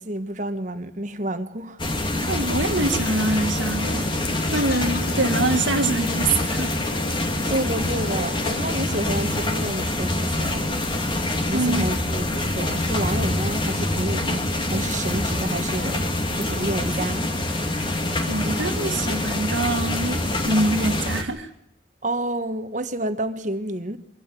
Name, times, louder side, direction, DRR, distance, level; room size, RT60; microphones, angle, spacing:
voice 1, 0.0-1.8 2.2-2.3 7.4-10.8 11.5-16.1 16.3-17.3 22.0-24.0, right 1 dB, 40° right, 1.5 m, -29 dB
sound 1, 1.8-21.2, left 1 dB, 25° left, 2.3 m, -25 dB
voice 2, 2.2-4.0 4.5-6.8 11.5-11.9 18.2-21.5, right 2 dB, 90° right, 2.4 m, -25 dB
sound 2, 3.8-9.8, left 3 dB, 50° left, 0.9 m, -36 dB
24.5 x 16.0 x 9.2 m
head